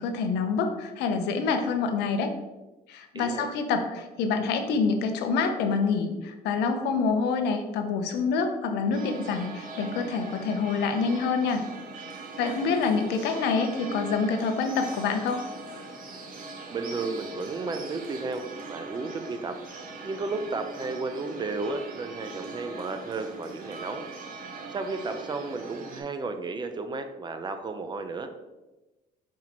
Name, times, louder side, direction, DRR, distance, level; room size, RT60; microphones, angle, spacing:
voice 1, 0.0-2.3 2.9-11.6 12.4-15.4, left 5 dB, 85° left, 6 dB, 0.6 m, -26 dB
voice 2, 3.1-3.5 12.4-12.9 16.7-19.6 20.0-24.1 24.7-28.3, right 3 dB, 25° right, 8 dB, 0.5 m, -33 dB
sound 1, 8.9-26.0, right 3 dB, 55° right, 0.9 m, -41 dB
4.6 x 2.8 x 4.1 m, 1.1 s
cardioid pair, 110°, 17 cm